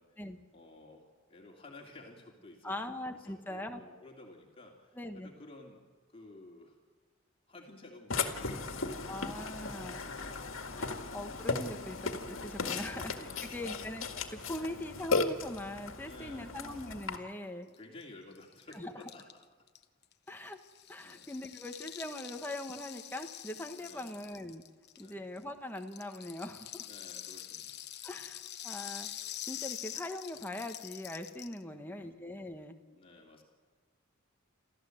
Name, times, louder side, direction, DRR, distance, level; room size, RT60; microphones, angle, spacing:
voice 1, 0.5-2.7 3.1-5.8 6.1-6.8 7.5-9.2 10.0-10.5 12.6-13.8 14.6-14.8 16.0-16.5 17.6-19.4 21.0-21.3 23.8-24.2 25.0-25.3 26.8-28.2 31.6-32.2 32.9-33.4, left 2 dB, 30° left, 0 dB, 2.9 m, -53 dB
voice 2, 2.6-3.8 4.9-5.3 9.1-10.0 10.7-14.1 14.3-17.7 18.7-18.9 20.3-20.6 20.9-24.6 25.0-26.9 28.0-29.1 29.5-32.8, left 1 dB, 10° left, 4 dB, 1.4 m, -41 dB
Burping eructation, 8.1-17.2, left 4 dB, 75° left, 2.0 m, -36 dB
Rattle (instrument), 17.7-17.8 18.0-18.1 18.3-25.4 25.8-31.6, left 12 dB, 55° left, 1.0 m, -45 dB
28.5 x 14.5 x 8.0 m, 1.4 s
head